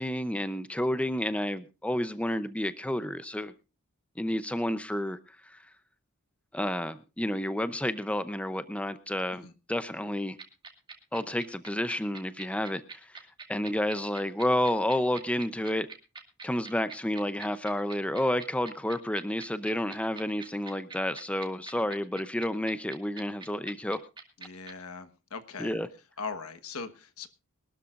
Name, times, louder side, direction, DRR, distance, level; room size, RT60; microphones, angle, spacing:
voice 1, 0.0-3.5 4.2-5.6 6.5-10.4 11.1-13.2 13.5-15.9 16.4-24.0 25.6-25.9, left 1 dB, 5° left, 12 dB, 0.6 m, -30 dB
sound 1, 10.4-24.7, right 5 dB, 20° right, 2.3 m, -43 dB
voice 2, 24.4-25.8 26.2-27.3, left 4 dB, 70° left, 10 dB, 1.3 m, -40 dB
23.5 x 12.5 x 2.5 m, 0.28 s
head